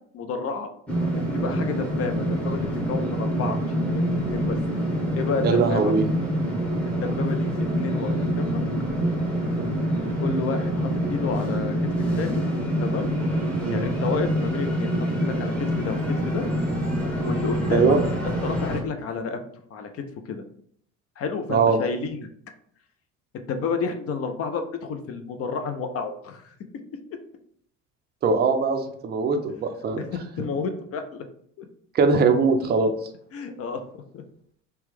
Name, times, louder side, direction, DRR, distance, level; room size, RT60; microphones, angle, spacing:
voice 1, 0.1-0.7 1.1-2.6 2.9-3.6 3.9-4.6 5.2-5.9 7.0-8.6 10.2-11.9 12.2-12.4 12.8-13.1 13.7-16.5 17.2-18.0 18.2-19.4 19.7-20.4 21.2-22.3 23.5-26.5 30.0-31.2 31.6-31.7 33.3-34.2, left 5 dB, 40° left, 7 dB, 0.5 m, -30 dB
sound 1, 0.9-18.8, equal, 5° left, 1.0 m, -26 dB
voice 2, 5.4-6.0 13.6-13.8 17.7-18.0 21.5-21.8 28.2-30.0 30.4-30.5 31.9-32.9, right 4 dB, 25° right, 5 dB, 0.4 m, -21 dB
2.9 x 2.2 x 3.3 m, 0.65 s
hypercardioid pair, 65°, 39 cm